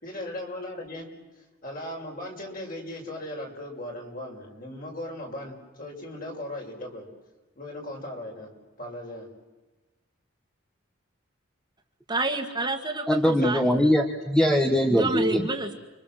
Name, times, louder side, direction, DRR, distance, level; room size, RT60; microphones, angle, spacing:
voice 1, 0.0-1.0 1.6-7.1 7.5-8.5 8.8-9.3, left 1 dB, 45° left, 0 dB, 6.4 m, -37 dB
voice 2, 12.1-13.8 14.9-15.8, right 2 dB, 20° right, 3 dB, 2.0 m, -29 dB
voice 3, 13.1-15.5, equal, 5° left, 4 dB, 1.4 m, -22 dB
30.0 x 24.5 x 7.7 m, 1.2 s
head